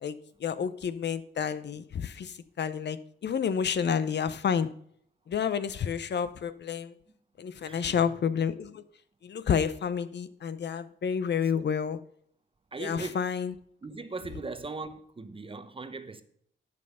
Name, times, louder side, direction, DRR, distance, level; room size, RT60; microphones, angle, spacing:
voice 1, 0.0-4.7 5.3-6.9 7.4-8.8 9.2-12.0 12.8-13.5, left 7 dB, 60° left, 0.6 m, -30 dB
voice 2, 7.6-8.0 11.5-11.6 12.7-13.3 13.8-16.2, right 3 dB, 25° right, 0.8 m, -39 dB
11.5 x 5.5 x 5.6 m
wide cardioid pair, 105°, 20 cm